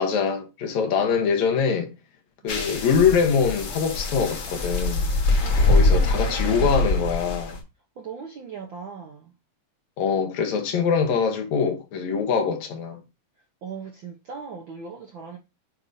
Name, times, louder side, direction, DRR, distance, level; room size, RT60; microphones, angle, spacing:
voice 1, 0.0-1.9 2.4-5.1 5.7-7.6 10.0-13.0, left 6 dB, 75° left, 2.4 m, -23 dB
sound 1, 2.5-7.6, left 2 dB, 50° left, 1.9 m, -23 dB
voice 2, 5.4-6.8 8.0-9.3 13.6-15.4, right 5 dB, 70° right, 1.1 m, -38 dB
8.7 x 4.7 x 2.6 m
omnidirectional pair, 3.3 m